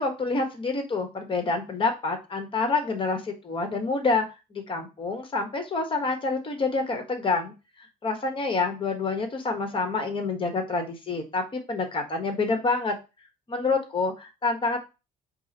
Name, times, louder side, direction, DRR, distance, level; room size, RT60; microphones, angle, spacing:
voice 1, 0.0-4.3 4.5-7.5 7.8-13.0 13.5-14.8, left 3 dB, 30° left, 6 dB, 1.2 m, -27 dB
4.7 x 3.3 x 2.8 m, 0.28 s
cardioid pair, 110°, 17 cm